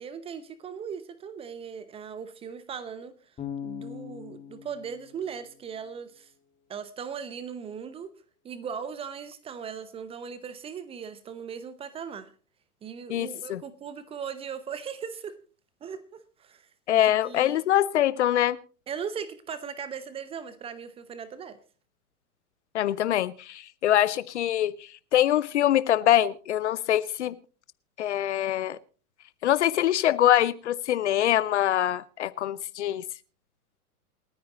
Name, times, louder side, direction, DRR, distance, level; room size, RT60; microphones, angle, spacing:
voice 1, 0.0-3.1 3.6-6.3 6.7-8.1 8.4-12.3 12.8-15.4 15.8-17.6 18.9-21.6, right 7 dB, 15° right, 0.7 m, -38 dB
Bass guitar, 3.4-6.4, left 8 dB, 15° left, 2.2 m, -41 dB
voice 2, 13.1-13.6 16.9-18.6 22.7-24.7 25.1-27.3 28.0-28.8 29.4-33.0, left 12 dB, 50° left, 0.7 m, -24 dB
28.0 x 9.5 x 2.9 m
figure-of-eight pair, 105°, 45 cm